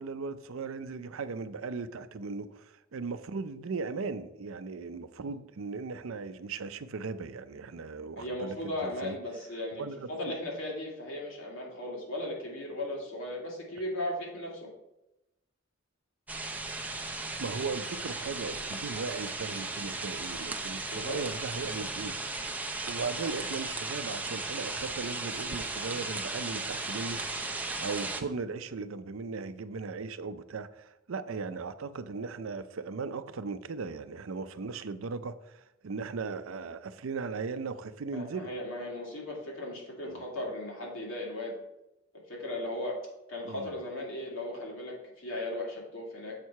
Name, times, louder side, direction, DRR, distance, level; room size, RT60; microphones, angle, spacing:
voice 1, 0.0-9.2 9.8-10.1 17.4-22.4 22.9-27.2 27.8-38.5 40.0-40.2 43.4-43.7, right 4 dB, 85° right, 12 dB, 0.5 m, -37 dB
voice 2, 8.2-14.7 20.9-21.2 38.1-41.5 42.3-43.0 43.3-46.4, left 1 dB, 75° left, -2 dB, 2.3 m, -37 dB
sound 1, 16.3-28.2, right 3 dB, 10° right, 0.5 m, -36 dB
7.4 x 4.6 x 5.6 m, 0.93 s
head